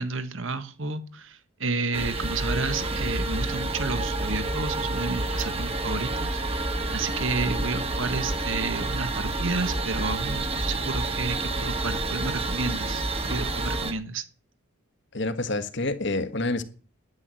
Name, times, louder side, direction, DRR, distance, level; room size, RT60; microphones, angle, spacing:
voice 1, 0.0-14.2, right 3 dB, 60° right, 1.4 m, -31 dB
sound 1, 1.9-13.9, right 2 dB, 25° right, 1.6 m, -29 dB
voice 2, 15.1-16.6, left 2 dB, 55° left, 1.5 m, -28 dB
11.0 x 10.5 x 7.6 m
head